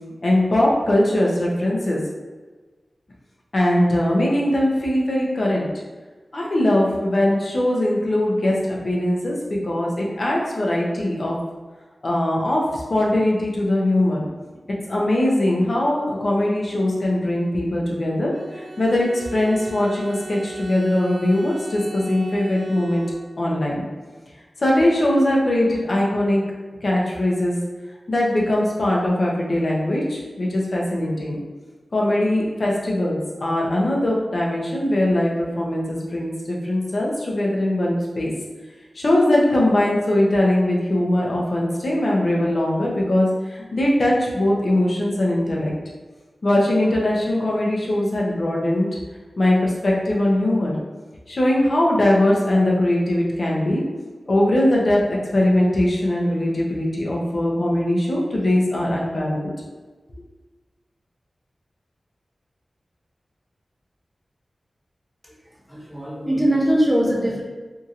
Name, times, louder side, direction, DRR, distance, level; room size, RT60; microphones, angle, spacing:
voice 1, 0.2-2.0 3.5-5.7 6.3-11.3 12.0-14.3 14.9-23.0 23.4-23.9 24.6-26.4 26.8-27.5 28.1-31.4 31.9-38.3 38.9-45.7 46.4-48.9 49.4-50.7 51.3-53.8 54.3-59.5, left 1 dB, 60° left, -3 dB, 0.7 m, -21 dB
Bowed string instrument, 18.3-23.6, right 2 dB, 65° right, 0.4 m, -38 dB
voice 2, 65.7-67.4, right 1 dB, ahead, -5 dB, 0.7 m, -21 dB
2.8 x 2.7 x 2.4 m, 1.3 s
wide cardioid pair, 75°, 0 cm